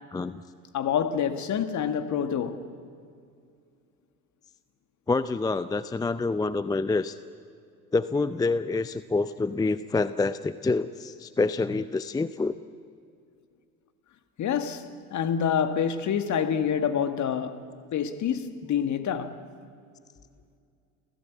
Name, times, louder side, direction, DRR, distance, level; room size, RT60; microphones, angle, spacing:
voice 1, 0.1-0.4 5.1-7.2 7.9-12.5, left 3 dB, 10° left, 0.5 m, -27 dB
voice 2, 0.7-2.7 14.4-19.4, left 8 dB, 40° left, 1.8 m, -27 dB
29.5 x 16.0 x 8.3 m
hypercardioid pair, 75°, 44 cm